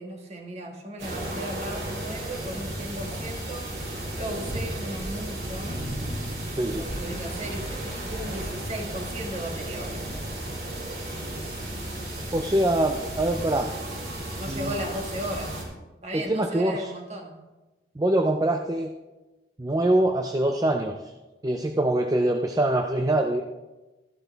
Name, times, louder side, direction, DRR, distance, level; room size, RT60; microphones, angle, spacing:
voice 1, 0.0-3.7 4.1-5.8 6.7-10.0 14.4-15.6 16.0-17.3, right 1 dB, 35° right, 2 dB, 1.7 m, -36 dB
sound 1, 1.0-15.6, right 1 dB, 65° right, 4.0 m, -34 dB
voice 2, 12.3-13.7 14.5-14.8 16.1-16.9 18.0-18.9 19.6-21.0 21.4-23.4, right 1 dB, 20° right, 4 dB, 0.5 m, -24 dB
13.5 x 12.0 x 3.4 m, 1.1 s
head